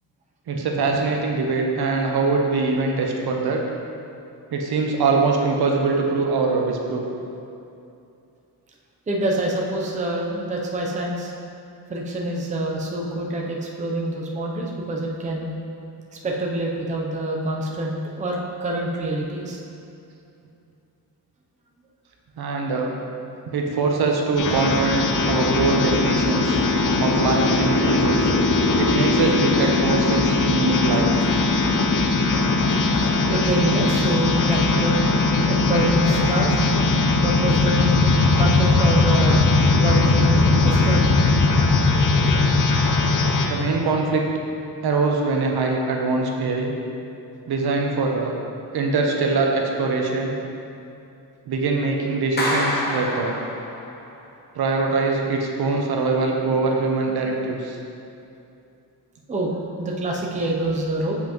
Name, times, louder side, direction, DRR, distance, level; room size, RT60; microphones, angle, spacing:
voice 1, 0.5-3.6 4.5-7.1 22.4-22.9 23.5-26.6 27.0-28.3 28.8-31.1 43.5-44.2 44.8-46.7 47.5-48.3 48.7-50.4 51.5-53.3 54.5-57.8, right 3 dB, 70° right, 1 dB, 0.9 m, -23 dB
voice 2, 9.1-11.3 11.9-15.5 16.2-19.6 33.3-35.0 35.5-36.7 37.2-38.0 38.4-39.5 39.8-41.1 59.3-61.2, right 1 dB, 20° right, -2 dB, 0.6 m, -26 dB
sound 1, 24.4-43.5, left 3 dB, 50° left, 0.7 m, -19 dB
sound 2, 30.0-30.2 30.8-31.7 32.0-34.1 34.4-35.1, left 2 dB, 80° left, 1.1 m, -38 dB
Clapping, 52.4-54.0, left 1 dB, 25° left, 0.9 m, -26 dB
7.6 x 5.6 x 3.0 m, 2.7 s
wide cardioid pair, 160°, 39 cm